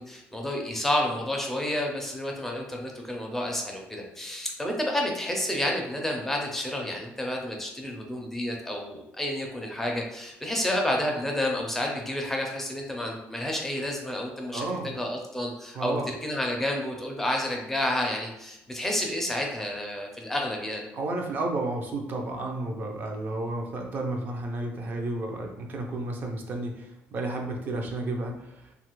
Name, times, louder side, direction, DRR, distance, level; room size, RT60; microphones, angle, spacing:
voice 1, 0.0-20.9, left 1 dB, 5° left, 0 dB, 0.5 m, -30 dB
voice 2, 14.5-14.9 15.7-16.1 20.9-28.7, right 2 dB, 45° right, 2 dB, 0.5 m, -32 dB
2.7 x 2.4 x 3.0 m, 0.87 s
cardioid pair, 135°, 5 cm